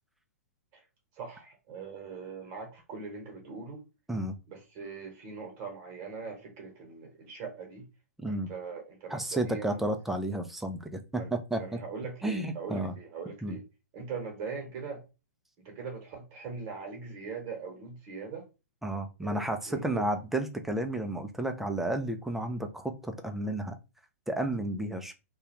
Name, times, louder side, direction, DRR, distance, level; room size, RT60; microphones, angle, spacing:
voice 1, 1.1-3.8 4.5-7.8 8.3-9.9 11.1-11.3 11.6-13.6 13.9-15.0 15.6-18.4 19.2-20.1, right 5 dB, 40° right, 2 dB, 0.9 m, -41 dB
voice 2, 9.1-11.8 12.2-12.9 13.4-13.6 18.8-23.8 24.3-25.1, right 1 dB, 5° right, 6 dB, 0.3 m, -32 dB
2.3 x 2.2 x 2.9 m, 0.29 s
hypercardioid pair, 120°, 9 cm